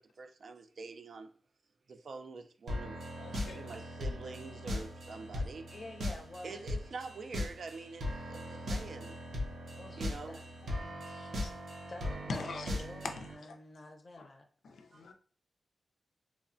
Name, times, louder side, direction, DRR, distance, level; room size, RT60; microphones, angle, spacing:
voice 1, 0.2-1.3 1.9-3.0 3.5-5.7 6.4-9.1 9.6-10.4 10.8-10.9 14.9-15.0, right 4 dB, 65° right, 0.3 m, -46 dB
sound 1, 2.7-13.3, left 1 dB, 90° right, 0.7 m, -39 dB
voice 2, 3.2-3.7 11.4-11.5 12.3-13.3 14.2-14.3 14.6-15.1, left 3 dB, 90° left, 0.4 m, -41 dB
voice 3, 5.7-6.6 9.8-10.4 10.7-11.4 11.9-14.4, left 2 dB, 35° left, 0.5 m, -50 dB
3.1 x 2.1 x 2.5 m
wide cardioid pair, 120°, 0 cm